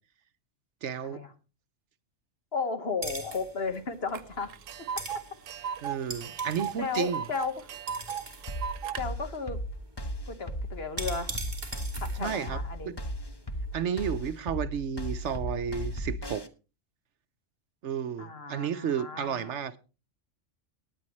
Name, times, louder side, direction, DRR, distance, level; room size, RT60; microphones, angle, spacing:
voice 1, 0.8-1.2 5.8-7.2 12.2-12.9 13.7-16.5 17.8-19.8, right 7 dB, 70° right, 1.1 m, -32 dB
voice 2, 2.5-4.5 5.6-5.8 6.8-7.7 9.0-9.6 10.3-11.4 12.0-12.9 18.2-19.5, left 4 dB, 55° left, 1.6 m, -34 dB
sound 1, 3.0-13.8, right 2 dB, 35° right, 2.5 m, -44 dB
Tick, 4.1-4.2 4.5-9.0, right 8 dB, 90° right, 1.1 m, -36 dB
sound 2, 8.5-16.5, equal, 20° left, 0.9 m, -35 dB
18.0 x 9.8 x 3.1 m
omnidirectional pair, 1.3 m